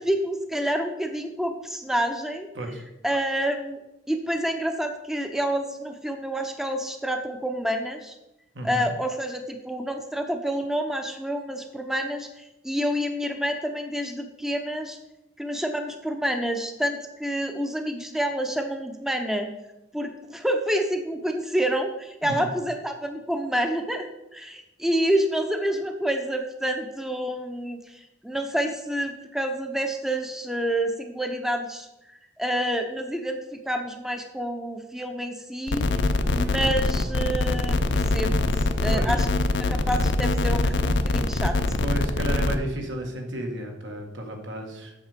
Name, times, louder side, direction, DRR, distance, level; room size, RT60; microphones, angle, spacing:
voice 1, 0.0-2.5 3.0-3.8 4.1-8.2 8.6-15.0 15.4-19.5 19.9-24.1 24.3-31.9 32.4-35.9 36.3-37.8 38.1-38.4 38.8-39.3 39.6-41.6, right 1 dB, ahead, 5 dB, 0.6 m, -28 dB
voice 2, 8.5-8.9 22.2-22.5 38.9-39.1 41.8-44.9, right 1 dB, 85° right, 2 dB, 1.8 m, -32 dB
sound 1, 35.7-42.6, left 2 dB, 75° left, 0.6 m, -23 dB
8.1 x 6.5 x 5.1 m, 0.91 s
head